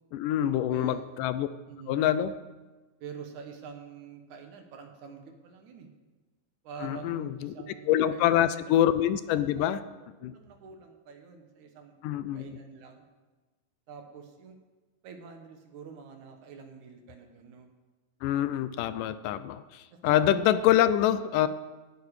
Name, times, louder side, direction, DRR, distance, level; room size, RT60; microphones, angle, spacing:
voice 1, 0.1-1.5 1.9-2.3 6.8-7.5 7.9-9.8 10.2-10.3 12.0-12.6 18.2-21.5, left 11 dB, 80° left, 13 dB, 2.1 m, -25 dB
voice 2, 0.7-1.0 1.7-2.2 3.0-5.9 6.6-8.7 9.6-9.7 10.2-12.0 12.3-13.1 13.9-14.6 15.0-17.7 19.9-20.2, right 6 dB, 65° right, 5 dB, 2.7 m, -46 dB
18.0 x 10.5 x 4.9 m, 1.2 s
omnidirectional pair, 3.9 m